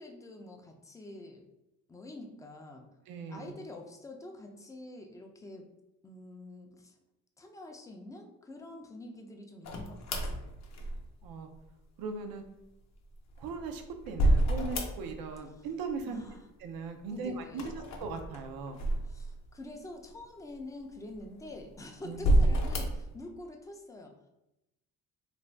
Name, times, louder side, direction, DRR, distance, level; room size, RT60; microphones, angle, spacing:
voice 1, 0.0-1.4 1.9-2.9 3.3-5.7 6.0-7.0 7.4-10.5 15.6-15.7 16.1-16.4 17.1-17.7 19.0-24.3, left 1 dB, 10° left, 2 dB, 0.3 m, -46 dB
voice 2, 3.1-3.5 11.2-11.5 12.0-12.4 13.4-16.2 16.6-17.7 18.0-18.8 22.0-22.3, right 4 dB, 85° right, 5 dB, 0.5 m, -39 dB
sound 1, 9.6-11.3 13.1-15.4 15.6-16.3 17.5-19.6 20.2-20.3 21.1-21.7 22.1-23.1, right 1 dB, 50° left, 0.6 m, -29 dB
2.5 x 2.2 x 3.2 m, 0.91 s
cardioid pair, 110°, 35 cm